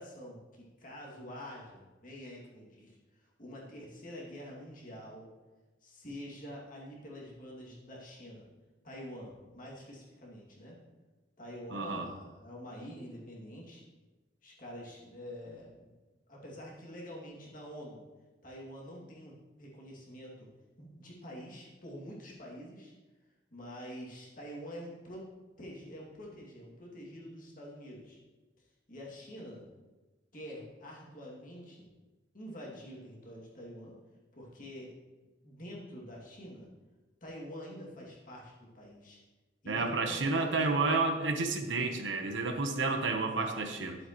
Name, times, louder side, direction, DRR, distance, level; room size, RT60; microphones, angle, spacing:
voice 1, 0.0-5.3 5.8-8.5 8.8-10.8 11.4-13.8 14.4-15.9 16.3-18.0 18.4-20.5 20.8-22.9 23.5-25.3 25.6-28.2 28.9-29.7 30.3-31.9 32.3-34.0 34.3-34.9 35.4-36.7 37.2-39.2 39.6-40.7 42.7-42.9 43.4-44.0, equal, 45° left, -4 dB, 2.3 m, -46 dB
voice 2, 11.7-12.1 39.7-44.0, right 3 dB, 85° right, 5 dB, 1.0 m, -30 dB
12.0 x 7.7 x 3.0 m, 1.2 s
head